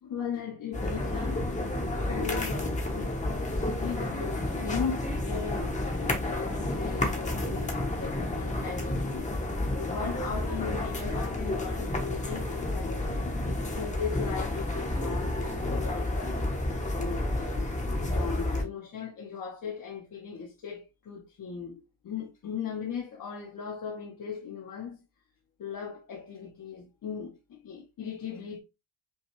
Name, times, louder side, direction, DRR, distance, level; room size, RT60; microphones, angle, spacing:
voice 1, 0.0-1.4 2.0-3.2 3.7-9.4 9.8-16.4 16.9-25.0 25.6-28.6, left 6 dB, 40° left, 0.8 m, -38 dB
sound 1, 0.7-18.6, left 1 dB, 15° left, 0.8 m, -31 dB
5.5 x 2.3 x 2.9 m
cardioid pair, 165°, 49 cm